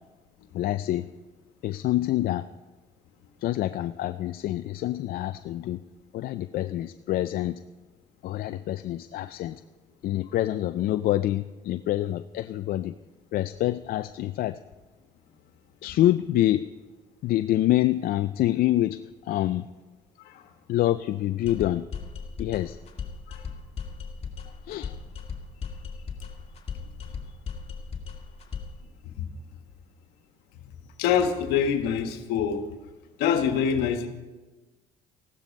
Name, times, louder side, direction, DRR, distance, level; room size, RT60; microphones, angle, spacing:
voice 1, 0.5-1.1 1.6-2.5 3.4-5.8 6.1-7.6 8.2-9.6 10.0-12.9 13.3-14.6 15.8-16.7 17.2-19.0 19.3-19.7 20.7-21.9 22.4-22.8 24.7-24.9, left 14 dB, 65° left, 11 dB, 0.5 m, -26 dB
sound 1, 21.5-28.8, left 6 dB, 40° left, 2.3 m, -37 dB
voice 2, 31.0-32.6 33.2-34.1, left 7 dB, 80° left, 6 dB, 1.5 m, -25 dB
15.0 x 12.0 x 5.3 m, 1.2 s
supercardioid pair, 70°, 17 cm